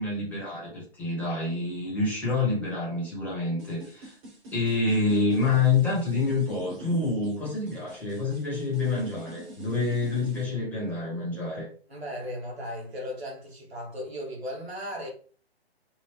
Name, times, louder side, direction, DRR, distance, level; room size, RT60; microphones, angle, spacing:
voice 1, 0.0-4.2 4.5-11.7, left 3 dB, 5° left, 1.1 m, -27 dB
sound 1, 3.6-10.4, right 1 dB, 25° right, 1.2 m, -45 dB
voice 2, 11.9-15.1, equal, 75° right, 1.7 m, -36 dB
3.6 x 2.2 x 3.2 m
figure-of-eight pair, 135°, 32 cm